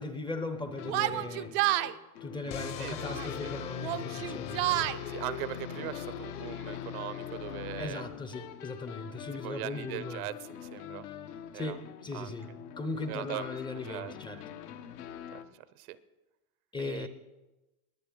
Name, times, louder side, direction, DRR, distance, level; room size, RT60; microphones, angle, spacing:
voice 1, 0.0-1.5 2.2-4.9 7.8-10.2 11.5-12.5 12.8-14.4 16.7-17.1, left 3 dB, 10° left, 9 dB, 0.5 m, -38 dB
sound 1, 0.6-15.4, left 9 dB, 80° left, 1.2 m, -45 dB
Yell, 0.9-1.9 3.0-3.4 3.8-5.0, right 16 dB, 45° right, 0.4 m, -30 dB
sound 2, 2.5-8.4, left 9 dB, 35° left, 0.8 m, -41 dB
voice 2, 2.8-3.1 3.4-3.5 5.1-8.0 9.4-11.1 11.5-11.8 12.1-12.4 13.1-14.1 15.3-16.0 16.8-17.1, right 14 dB, 75° right, 16 dB, 0.8 m, -40 dB
21.0 x 8.3 x 3.9 m, 1.1 s
supercardioid pair, 135°, 44 cm